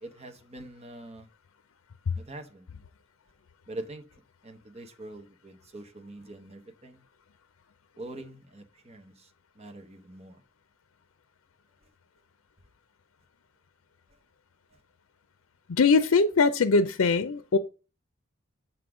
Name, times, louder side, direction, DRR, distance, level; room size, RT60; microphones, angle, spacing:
voice 1, 0.0-1.3 2.2-2.7 3.7-4.1 4.4-7.0 8.0-9.3 9.6-10.4, right 2 dB, 30° right, 1.0 m, -44 dB
voice 2, 15.8-17.6, left 4 dB, 80° left, 0.5 m, -21 dB
7.4 x 3.9 x 4.8 m
head